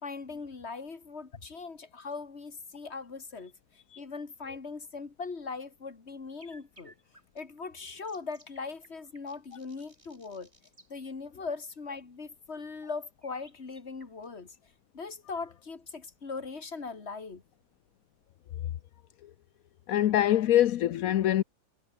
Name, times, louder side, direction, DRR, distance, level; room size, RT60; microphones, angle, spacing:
voice 1, 0.0-3.5 4.0-6.9 7.3-10.5 10.9-14.5 14.9-17.4, left 4 dB, 50° left, 2.5 m, -40 dB
sound 1, 6.3-10.9 13.2-14.5, right 1 dB, 20° right, 4.7 m, -59 dB
voice 2, 19.9-21.4, left 12 dB, 80° left, 1.2 m, -24 dB
omnidirectional pair, 1.5 m